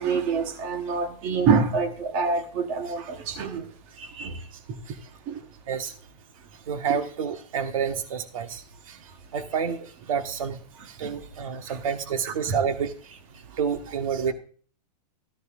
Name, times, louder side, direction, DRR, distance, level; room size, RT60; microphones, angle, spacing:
voice 1, 0.0-3.7 4.2-4.4 5.3-5.4 11.0-11.1 11.7-11.8 12.2-12.6, right 5 dB, 25° right, 7 dB, 1.0 m, -26 dB
voice 2, 4.0-4.5 4.9-5.0 5.7-5.9 6.7-10.6 10.8-13.2 13.5-14.3, right 7 dB, 55° right, 6 dB, 1.5 m, -29 dB
14.5 x 13.5 x 2.5 m, 0.43 s
supercardioid pair, 180°, 21 cm